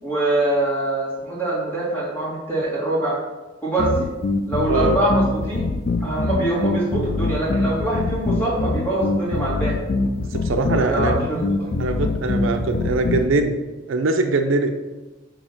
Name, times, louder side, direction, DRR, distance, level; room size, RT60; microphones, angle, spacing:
voice 1, 0.0-3.2 3.6-4.1 4.5-5.6 5.9-9.7 10.7-11.7, right 2 dB, 10° left, -6 dB, 1.9 m, -24 dB
sound 1, 3.8-13.3, left 3 dB, 45° left, 0.3 m, -23 dB
voice 2, 4.7-5.0 10.3-11.2 11.8-13.6 13.9-14.7, right 3 dB, 65° right, 6 dB, 0.5 m, -22 dB
6.9 x 2.9 x 5.7 m, 1.2 s
head